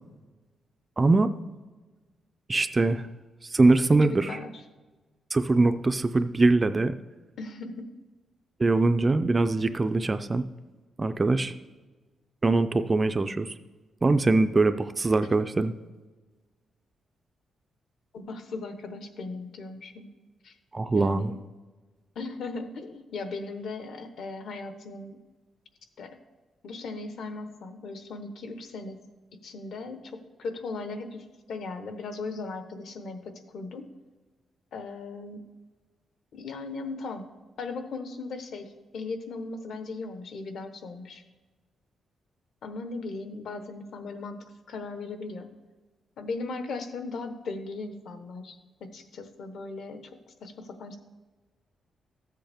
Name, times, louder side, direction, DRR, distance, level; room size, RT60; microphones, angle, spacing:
voice 1, 1.0-1.3 2.5-3.1 3.4-4.4 5.3-7.0 8.6-10.4 11.0-11.5 12.4-13.5 14.0-15.7 20.7-21.3, right 3 dB, 20° right, 10 dB, 0.3 m, -22 dB
voice 2, 4.0-4.5 7.4-7.9 18.1-20.1 20.4-20.5 20.9-21.3 22.1-25.2 26.0-26.2 26.6-29.0 29.4-33.9 34.7-35.4 36.3-37.3 37.6-41.2 42.6-44.4 44.7-45.5 46.2-50.1 50.4-51.0, left 3 dB, 60° left, 8 dB, 1.0 m, -37 dB
14.0 x 7.7 x 3.5 m, 1.3 s
wide cardioid pair, 175°, 0 cm